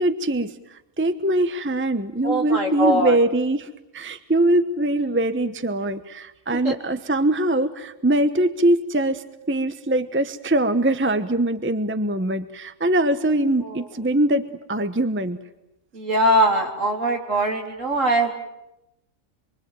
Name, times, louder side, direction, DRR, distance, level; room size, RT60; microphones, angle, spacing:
voice 1, 0.0-15.4, right 1 dB, 10° right, 10 dB, 0.9 m, -22 dB
voice 2, 2.2-3.2 6.6-6.7 13.6-13.9 15.9-18.3, right 1 dB, 60° right, 2 dB, 4.0 m, -21 dB
26.5 x 24.0 x 9.2 m, 0.88 s
omnidirectional pair, 1.5 m